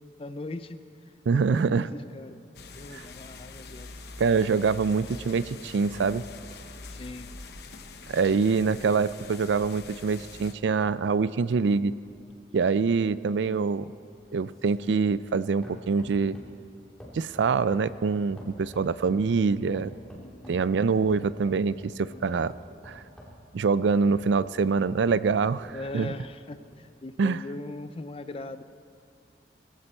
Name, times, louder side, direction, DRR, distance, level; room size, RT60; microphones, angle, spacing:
voice 1, 0.2-0.8 1.1-2.4 2.7-4.0 6.9-7.3 20.1-20.7 22.1-22.4 25.7-28.6, left 2 dB, 30° left, 12 dB, 0.4 m, -40 dB
voice 2, 1.3-1.9 2.9-3.1 4.2-6.2 8.1-11.9 12.5-13.9 14.3-16.4 17.1-19.9 20.5-22.5 22.8-23.0 23.5-26.1 27.2-27.4, right 5 dB, 80° right, 17 dB, 0.4 m, -25 dB
sound 1, 2.5-10.5, left 3 dB, 60° left, 0.9 m, -44 dB
sound 2, 12.0-15.4 15.6-16.6 17.0-19.3 19.7-20.7 21.1-22.0 22.5-24.8 25.2-26.2 26.7-26.8, equal, 5° left, 2.6 m, -49 dB
21.0 x 15.5 x 4.4 m, 2.6 s
head